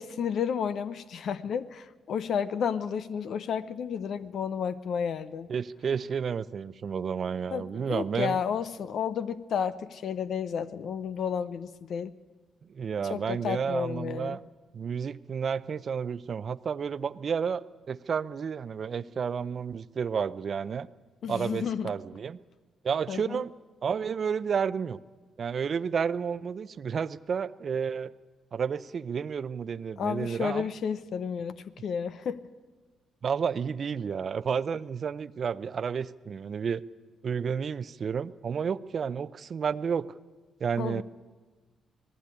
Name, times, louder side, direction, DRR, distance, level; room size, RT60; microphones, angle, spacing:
voice 1, 0.0-5.5 7.5-12.1 13.1-14.4 21.2-21.9 23.1-23.4 30.0-32.4 40.8-41.0, left 7 dB, 70° left, 14 dB, 0.7 m, -32 dB
voice 2, 5.5-8.4 12.7-14.4 14.7-20.9 21.3-22.4 22.8-23.5 23.8-25.0 25.4-28.1 28.5-30.7 33.2-36.8 37.2-40.1 40.6-41.0, right 6 dB, 55° right, 16 dB, 0.6 m, -31 dB
19.0 x 15.0 x 9.8 m, 1.3 s
cardioid pair, 75°, 0 cm